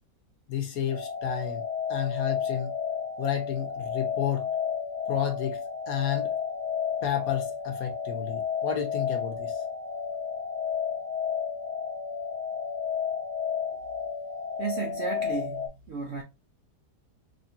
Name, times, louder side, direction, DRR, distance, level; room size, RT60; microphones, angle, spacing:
voice 1, 0.5-1.6 1.9-2.7 3.2-4.5 5.1-5.6 5.9-6.3 7.0-9.6, left 9 dB, 65° left, 1.1 m, -31 dB
sound 1, 0.9-15.7, left 7 dB, 5° left, 0.8 m, -32 dB
voice 2, 14.6-16.2, right 5 dB, 60° right, 0.7 m, -34 dB
4.1 x 2.9 x 2.7 m
omnidirectional pair, 1.8 m